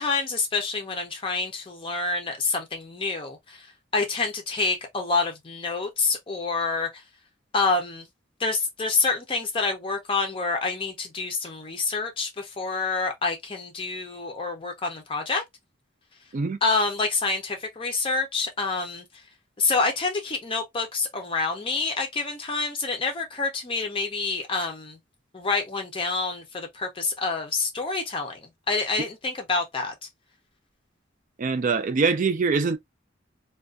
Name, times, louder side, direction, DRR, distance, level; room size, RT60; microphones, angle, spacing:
voice 1, 0.0-3.6 3.9-6.9 7.5-8.0 8.4-15.4 16.6-19.0 19.6-25.0 25.3-28.4 28.7-29.9, left 4 dB, 30° left, 0.5 m, -27 dB
voice 2, 31.4-32.8, right 4 dB, 45° right, 0.4 m, -23 dB
2.4 x 2.2 x 2.3 m
head